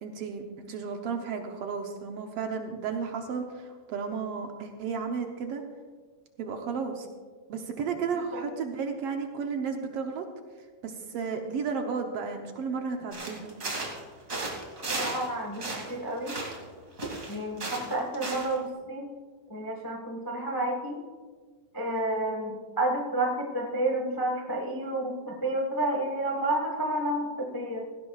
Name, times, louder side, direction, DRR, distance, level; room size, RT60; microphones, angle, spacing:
voice 1, 0.0-5.6 6.4-7.1 7.5-10.3 10.8-13.5, right 5 dB, 65° right, 4 dB, 1.7 m, -33 dB
sound 1, 13.1-14.0 14.3-15.3 15.5-16.7 17.0-18.6, right 2 dB, 30° right, 2.4 m, -35 dB
voice 2, 15.0-16.4 17.3-19.1 19.5-21.0 21.7-27.8, right 1 dB, 25° left, 0 dB, 0.4 m, -30 dB
17.0 x 16.0 x 2.4 m, 1.5 s
omnidirectional pair, 3.3 m